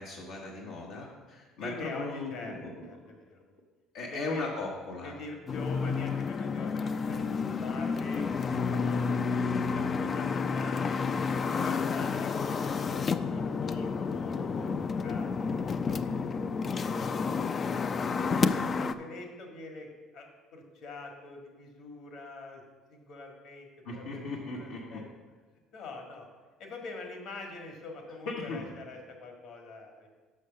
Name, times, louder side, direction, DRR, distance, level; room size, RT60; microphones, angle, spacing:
voice 1, 0.0-2.9 3.9-5.1 12.0-12.1 23.8-25.0 28.2-28.7, left 3 dB, 85° left, -4 dB, 1.2 m, -37 dB
voice 2, 1.6-2.6 2.8-3.4 4.1-4.5 5.0-9.5 9.7-11.0 11.5-13.0 13.3-17.0 17.4-17.8 18.1-22.6 22.9-24.3 24.5-25.1 25.7-26.3 26.6-30.1, left 3 dB, 65° left, 2 dB, 1.7 m, -45 dB
sound 1, 5.5-18.9, left 5 dB, 40° left, 0.4 m, -30 dB
6.4 x 5.5 x 6.4 m, 1.3 s
supercardioid pair, 85°, 0 cm